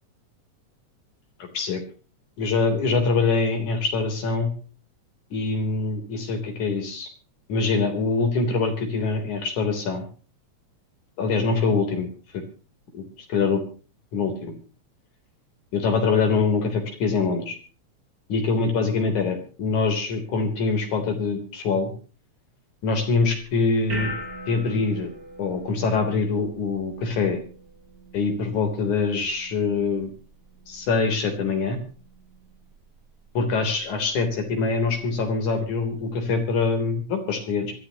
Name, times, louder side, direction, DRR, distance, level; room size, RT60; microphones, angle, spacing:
voice 1, 2.4-4.5 5.3-7.1 7.5-10.0 11.2-12.1 12.9-13.6 14.1-14.5 15.7-17.6 18.3-21.9 22.8-24.1 24.5-25.1 25.4-27.4 28.1-30.1 30.7-31.8 33.3-37.7, left 4 dB, 75° left, 6 dB, 4.8 m, -24 dB
sound 1, 22.9-36.4, equal, 30° right, 5.4 m, -43 dB
25.0 x 14.0 x 2.9 m, 0.36 s
omnidirectional pair, 3.4 m